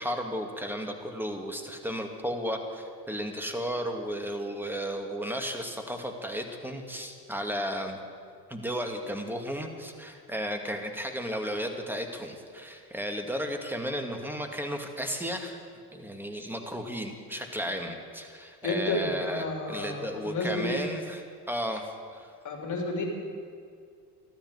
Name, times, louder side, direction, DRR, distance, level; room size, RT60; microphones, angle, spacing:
voice 1, 0.0-8.0 8.5-15.6 15.9-22.3, equal, 5° right, 4 dB, 2.4 m, -34 dB
voice 2, 18.6-20.8 22.4-23.0, left 2 dB, 40° left, 1 dB, 3.8 m, -31 dB
13.5 x 13.0 x 8.2 m, 2.3 s
hypercardioid pair, 70°, 46 cm